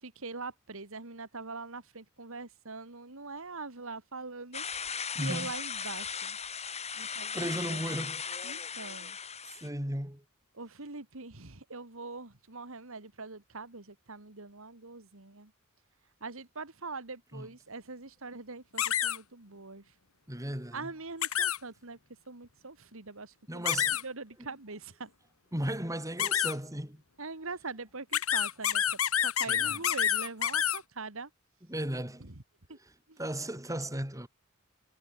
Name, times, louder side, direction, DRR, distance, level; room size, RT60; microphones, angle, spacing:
voice 1, 0.0-4.6 4.9-6.4 6.9-8.1 8.4-9.2 10.5-15.5 16.2-19.8 20.7-22.0 22.3-23.6 24.0-25.1 27.2-28.8 29.2-31.3 32.2-32.3 32.7-32.8 33.1-33.2, right 3 dB, 70° right, 2.5 m, -43 dB
sound 1, 4.5-9.7, left 6 dB, 30° left, 4.3 m, -37 dB
voice 2, 5.1-5.5 7.0-8.2 9.6-10.2 17.3-17.5 20.3-20.9 23.5-24.0 25.5-27.0 29.5-29.8 31.7-32.3 32.7-34.3, right 1 dB, 15° right, 6.2 m, -36 dB
sound 2, 18.8-19.2 21.2-21.6 23.7-24.0 26.2-26.5 28.1-30.8, left 10 dB, 75° left, 1.8 m, -28 dB
head